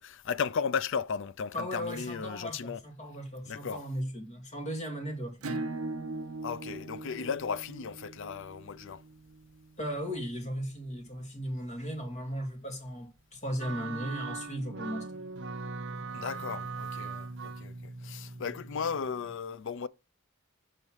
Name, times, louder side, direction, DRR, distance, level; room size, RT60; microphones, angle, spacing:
voice 1, 0.0-2.8 3.5-3.8 6.4-9.0 16.1-19.9, left 6 dB, 60° left, 0.5 m, -35 dB
voice 2, 1.5-5.5 9.8-15.2, equal, 30° left, 2.2 m, -37 dB
Acoustic guitar / Strum, 5.4-10.7, right 2 dB, 80° right, 1.2 m, -40 dB
sound 1, 13.6-19.3, right 4 dB, 55° right, 0.7 m, -40 dB
7.3 x 4.1 x 6.2 m
head